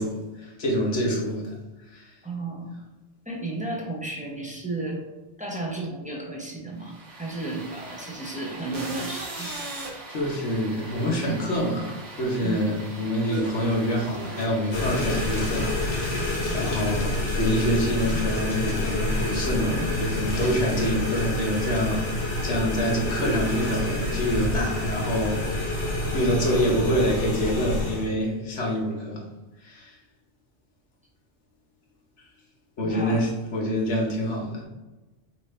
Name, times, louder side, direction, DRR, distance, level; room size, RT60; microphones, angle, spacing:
voice 1, 0.0-1.5 1.9-2.1 9.3-9.8 10.1-16.3 16.5-22.1 22.4-29.2 29.6-29.9 32.8-34.6, equal, 85° left, -2 dB, 1.4 m, -26 dB
voice 2, 2.2-2.7 3.3-5.0 5.4-9.5 12.4-12.6 16.5-16.6 32.8-33.2, right 2 dB, 10° right, -2 dB, 0.7 m, -33 dB
sound 1, 6.8-17.0, right 2 dB, 85° right, 1.3 m, -40 dB
sound 2, 14.7-28.1, left 1 dB, 65° left, 1.3 m, -28 dB
5.8 x 2.8 x 3.2 m, 1.1 s
omnidirectional pair, 1.2 m